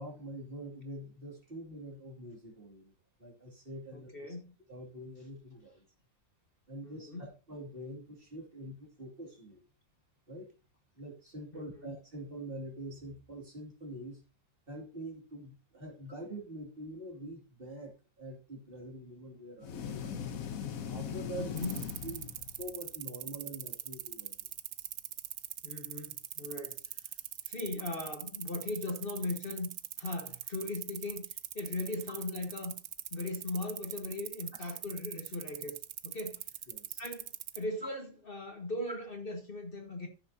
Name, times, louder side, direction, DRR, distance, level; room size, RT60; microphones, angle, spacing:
voice 1, 0.0-2.9 3.2-4.3 4.7-5.8 6.7-9.6 10.3-10.5 10.9-14.2 14.7-20.4 20.9-21.6 22.0-24.5 34.5-34.8 36.7-37.0 38.9-39.0, right 1 dB, 40° right, 2.7 m, -45 dB
voice 2, 3.9-4.5 6.8-7.2 11.5-11.9 21.4-21.8 25.6-27.1 27.4-29.7 30.0-32.7 33.1-35.8 36.0-36.4 37.0-40.1, left 2 dB, 40° left, 1.4 m, -39 dB
sound 1, 19.6-22.8, left 8 dB, 80° left, 1.3 m, -40 dB
sound 2, 21.6-37.6, right 11 dB, 65° right, 0.6 m, -41 dB
13.5 x 6.4 x 2.7 m
omnidirectional pair, 1.5 m